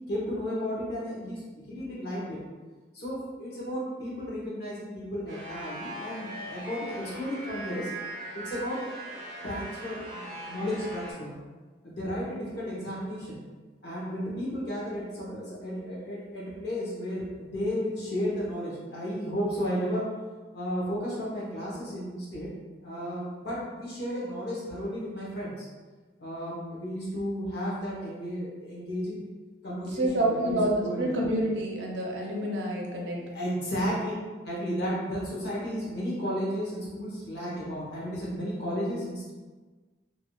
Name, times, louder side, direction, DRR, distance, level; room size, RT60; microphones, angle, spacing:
voice 1, 0.1-2.4 2.9-7.9 8.3-8.9 9.4-11.3 11.8-13.4 13.8-20.1 20.5-22.5 22.8-25.7 26.2-29.2 29.6-31.1 33.3-34.1 34.4-39.3, equal, 55° left, -6 dB, 1.0 m, -33 dB
sound 1, 5.3-11.1, right 1 dB, 45° right, 0.9 m, -40 dB
voice 2, 29.9-33.2 33.7-33.8, right 1 dB, 75° right, -2 dB, 0.6 m, -28 dB
3.0 x 2.7 x 2.3 m, 1.3 s
head